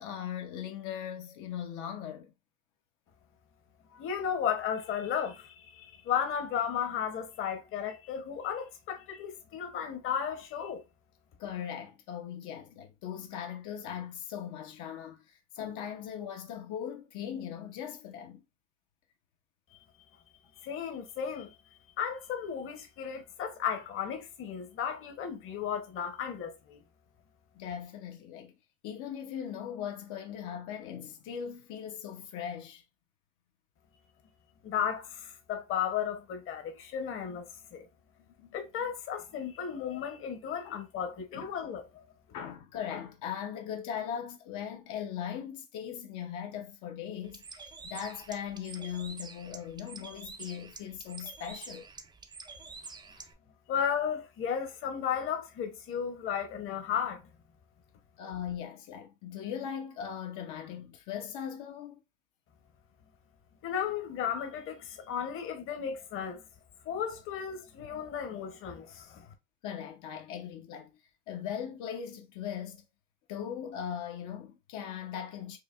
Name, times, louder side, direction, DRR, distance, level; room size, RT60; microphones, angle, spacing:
voice 1, 0.0-2.3 11.4-18.4 27.6-28.5 28.8-32.8 38.2-38.6 40.6-40.8 41.3-41.5 42.3-51.9 52.8-53.3 58.2-62.0 69.6-70.9 71.3-72.8 73.3-75.6, left 9 dB, 75° left, 0.8 m, -39 dB
voice 2, 3.9-10.8 19.7-19.8 20.6-21.6 22.0-26.8 34.6-37.5 37.7-37.9 38.5-42.0 53.7-57.2 63.6-66.4 66.8-69.3, left 8 dB, 45° left, 0.9 m, -34 dB
Bird, 47.2-53.3, right 4 dB, 15° right, 0.3 m, -47 dB
4.8 x 2.8 x 2.4 m
cardioid pair, 155°, 30 cm